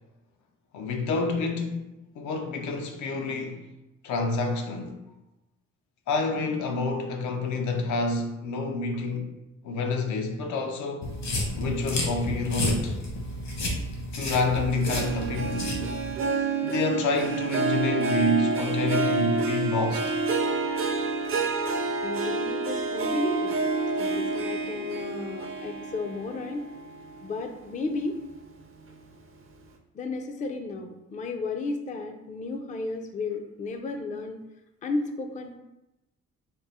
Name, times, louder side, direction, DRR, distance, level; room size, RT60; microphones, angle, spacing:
voice 1, 0.7-1.8 2.2-3.6 4.0-5.0 6.1-9.3 9.6-11.1 11.6-13.0 14.1-15.8 16.6-20.1, left 3 dB, 80° left, 0.6 m, -28 dB
sound 1, 11.0-16.1, left 1 dB, 60° left, 1.1 m, -31 dB
Harp, 14.9-27.6 28.0-28.4 28.9-29.0, right 3 dB, 45° right, 0.5 m, -28 dB
voice 2, 22.0-23.6 24.0-26.7 27.2-28.2 29.9-34.4 34.8-35.6, left 3 dB, 25° left, 0.4 m, -33 dB
3.6 x 2.0 x 4.0 m
cardioid pair, 90°, 30 cm